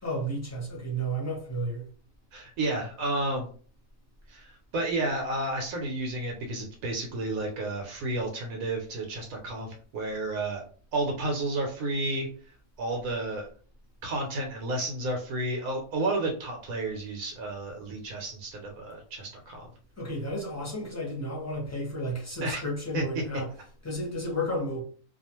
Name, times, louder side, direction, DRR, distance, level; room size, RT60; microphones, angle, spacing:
voice 1, 0.0-1.9 20.0-23.5 23.8-24.8, equal, 15° left, 0.6 m, -32 dB
voice 2, 2.3-3.5 4.3-10.6 10.9-12.3 12.8-13.5 14.0-19.7 22.4-22.6 22.9-23.0, right 2 dB, 75° right, 1.0 m, -31 dB
2.4 x 2.3 x 2.9 m
omnidirectional pair, 1.5 m